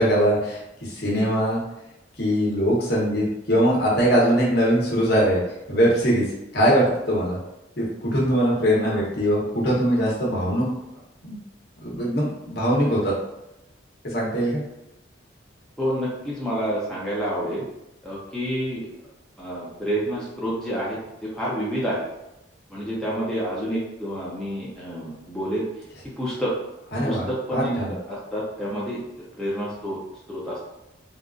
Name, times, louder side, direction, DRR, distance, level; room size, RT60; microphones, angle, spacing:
voice 1, 0.0-1.6 2.2-5.4 5.7-6.2 6.5-7.4 7.8-10.6 11.2-11.4 11.8-13.1 14.0-14.6 26.9-27.9, equal, 55° left, -5 dB, 1.0 m, -21 dB
voice 2, 15.8-17.6 18.0-18.9 19.4-22.0 22.7-25.6 26.2-26.6 27.0-29.0 29.4-30.0 30.3-30.6, equal, 5° left, -7 dB, 0.6 m, -28 dB
3.7 x 2.5 x 2.4 m, 0.91 s
head